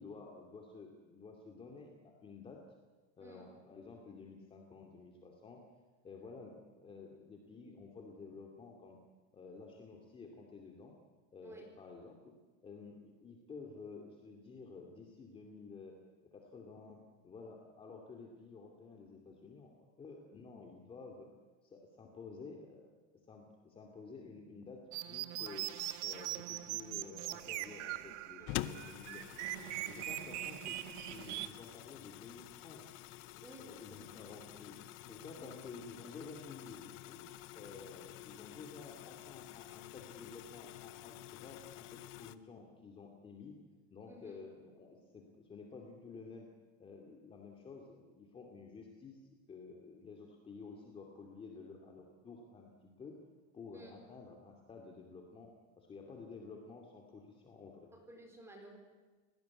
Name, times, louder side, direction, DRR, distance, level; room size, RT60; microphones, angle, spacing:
voice 1, 0.0-2.6 3.2-5.6 6.0-9.0 9.3-10.9 11.3-12.3 12.6-16.0 16.3-19.7 20.0-21.3 21.6-22.9 23.3-25.7 26.0-29.3 29.6-32.8 33.6-34.8 35.1-37.2 37.5-43.6 43.9-46.5 46.8-53.2 53.5-57.9, left 4 dB, 15° left, 1 dB, 2.6 m, -52 dB
sound 1, 24.9-31.5, right 15 dB, 85° right, 1.5 m, -41 dB
sound 2, 28.5-42.4, left 15 dB, 35° left, 0.8 m, -48 dB
voice 2, 44.1-44.4 53.7-54.0 57.9-58.8, right 1 dB, 10° right, 3 dB, 4.5 m, -54 dB
29.5 x 18.5 x 9.7 m, 1.3 s
cardioid pair, 175°, 34 cm